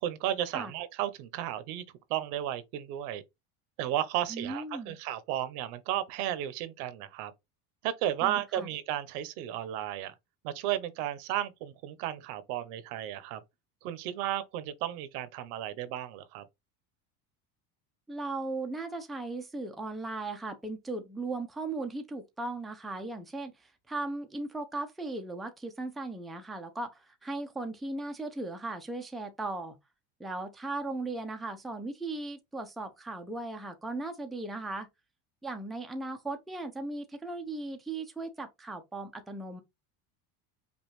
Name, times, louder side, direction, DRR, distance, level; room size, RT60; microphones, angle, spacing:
voice 1, 0.0-1.8 2.1-3.2 3.8-7.3 7.8-10.1 10.4-13.4 13.8-16.4, right 12 dB, 80° right, 0.9 m, -33 dB
voice 2, 4.3-5.0 8.2-8.7 18.1-29.7 30.2-34.9 35.4-39.6, right 2 dB, ahead, 0.4 m, -37 dB
5.2 x 2.4 x 3.1 m
supercardioid pair, 125°, 44 cm